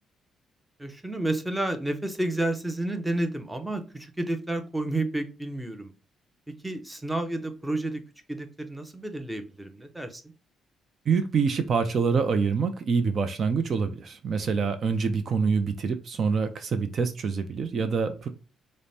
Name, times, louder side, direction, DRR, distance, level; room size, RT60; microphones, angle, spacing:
voice 1, 0.8-5.9 6.6-8.0 8.3-10.2, right 1 dB, 10° right, 0.6 m, -30 dB
voice 2, 11.1-18.3, right 5 dB, 50° right, 0.4 m, -26 dB
5.0 x 2.1 x 2.7 m
cardioid pair, 90°, 0 cm